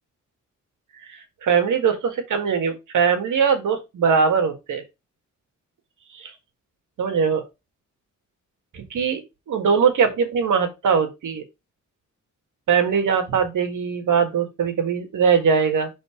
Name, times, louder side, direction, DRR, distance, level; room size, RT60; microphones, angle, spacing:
voice 1, 1.1-4.8 6.1-6.3 7.0-7.4 8.7-9.2 9.5-11.4 12.7-15.9, right 6 dB, 85° right, 6 dB, 1.7 m, -21 dB
5.4 x 3.9 x 4.8 m, 0.23 s
cardioid pair, 105°, 30 cm